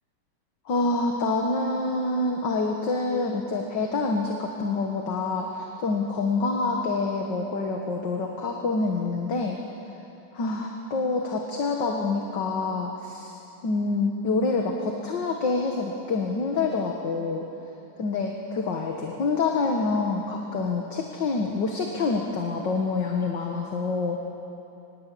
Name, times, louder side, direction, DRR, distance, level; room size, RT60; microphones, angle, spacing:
voice 1, 0.7-9.6 10.3-13.4 13.6-17.5 18.0-24.2, left 3 dB, 60° left, 1 dB, 2.3 m, -27 dB
25.0 x 20.0 x 8.5 m, 2.8 s
omnidirectional pair, 2.2 m